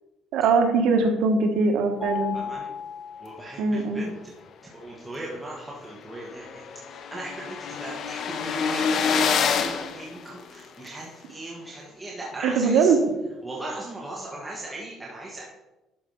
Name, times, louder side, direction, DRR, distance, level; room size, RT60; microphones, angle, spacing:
voice 1, 0.3-2.4 3.6-4.0 12.4-13.0, right 4 dB, 75° right, 5 dB, 1.4 m, -21 dB
Mallet percussion, 2.0-4.0, left 6 dB, 15° left, 3.1 m, -35 dB
voice 2, 2.3-2.7 3.2-4.3 4.7-6.6 6.9-13.0 13.4-15.4, right 2 dB, 10° right, -4 dB, 1.4 m, -38 dB
sound 1, 5.3-5.4 5.7-5.8 6.0-10.9, left 6 dB, 50° left, 0.8 m, -27 dB
11.5 x 4.8 x 5.4 m, 1.0 s
cardioid pair, 160°, 0 cm